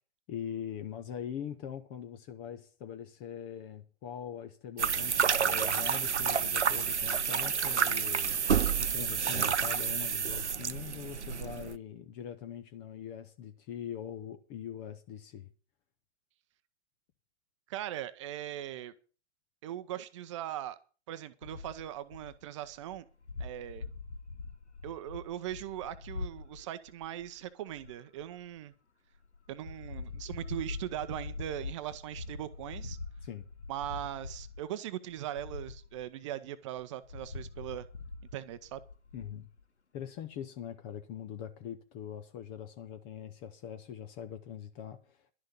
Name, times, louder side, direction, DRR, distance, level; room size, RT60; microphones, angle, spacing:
voice 1, 0.3-15.5 33.2-33.5 39.1-39.5 39.9-45.3, left 9 dB, 15° left, 0.5 m, -42 dB
sound 1, 4.8-11.7, right 7 dB, 75° right, 0.7 m, -29 dB
voice 2, 17.7-18.9 19.6-20.8 21.1-23.1 23.4-23.8 24.8-28.7 29.5-33.0 33.7-37.9 38.3-38.8, right 12 dB, 25° right, 0.7 m, -40 dB
sound 2, 21.4-28.6 29.1-34.7 35.1-36.1 36.8-39.6, left 3 dB, 70° left, 1.5 m, -44 dB
11.5 x 6.4 x 8.3 m
figure-of-eight pair, 120°, 35 cm